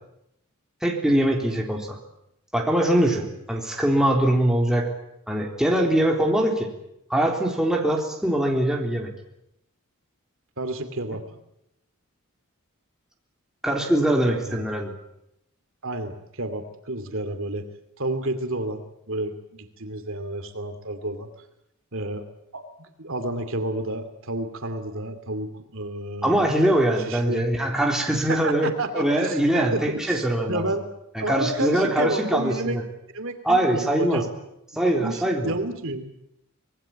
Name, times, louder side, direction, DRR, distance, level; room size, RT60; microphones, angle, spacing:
voice 1, 0.8-2.0 2.5-4.9 5.3-6.7 7.1-9.1 13.6-14.9 26.2-30.7 31.2-32.8 33.4-34.2 34.8-35.5, right 1 dB, 5° right, 0 dB, 3.8 m, -22 dB
voice 2, 10.6-11.2 14.5-14.7 15.8-17.6 18.0-21.3 21.9-22.3 22.5-26.5 27.0-27.5 28.2-30.8 31.2-32.8 33.1-34.3 34.8-36.1, right 2 dB, 65° right, 8 dB, 2.7 m, -30 dB
25.5 x 20.0 x 8.9 m, 0.81 s
head